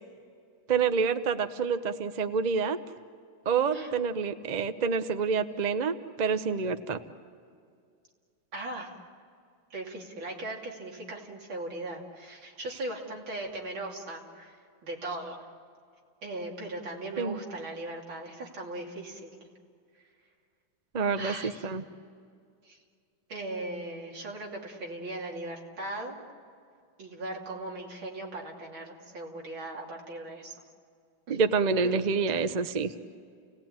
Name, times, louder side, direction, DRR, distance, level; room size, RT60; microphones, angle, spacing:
voice 1, 0.7-2.8 3.4-7.0 17.2-17.4 20.9-21.8 31.3-32.9, right 5 dB, 45° right, 10 dB, 0.5 m, -27 dB
voice 2, 8.5-8.9 9.7-14.6 14.8-15.4 16.2-19.5 21.1-21.7 22.7-22.8 23.3-26.2 27.0-30.5 31.3-31.4 31.8-32.0 32.3-32.4, right 2 dB, 85° right, -1 dB, 3.6 m, -38 dB
29.5 x 18.5 x 8.9 m, 2.2 s
omnidirectional pair, 2.1 m